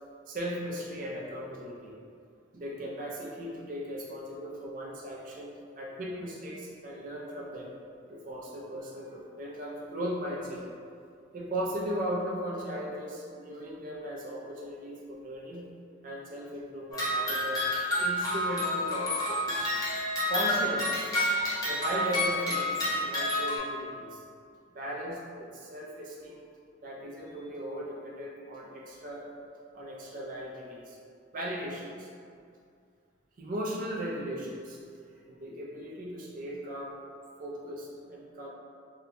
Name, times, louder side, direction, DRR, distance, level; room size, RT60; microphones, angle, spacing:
voice 1, 0.3-2.0 2.5-7.7 8.1-10.6 11.3-15.7 16.0-19.7 20.3-21.0 21.6-24.2 24.7-26.5 26.8-29.2 29.7-31.0 31.3-32.1 33.4-34.8 35.3-37.0 37.4-38.5, equal, 45° right, -3 dB, 0.4 m, -37 dB
sound 1, 16.9-23.6, left 1 dB, 20° left, 0.5 m, -29 dB
2.8 x 2.2 x 2.5 m, 2.3 s
head